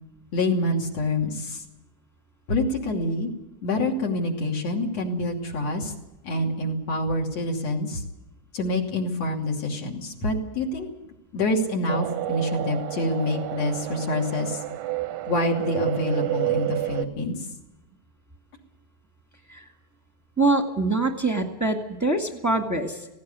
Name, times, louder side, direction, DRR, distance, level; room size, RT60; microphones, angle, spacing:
voice 1, 0.3-1.6 2.5-3.3 3.6-5.9 6.2-8.0 8.5-10.9 11.3-14.6 15.3-17.4, left 1 dB, 60° left, 0 dB, 3.9 m, -26 dB
sound 1, 11.9-17.1, right 15 dB, 85° right, 2.4 m, -29 dB
voice 2, 20.4-23.1, right 2 dB, 10° right, 3 dB, 1.2 m, -24 dB
18.0 x 17.0 x 9.4 m, 0.95 s
omnidirectional pair, 3.3 m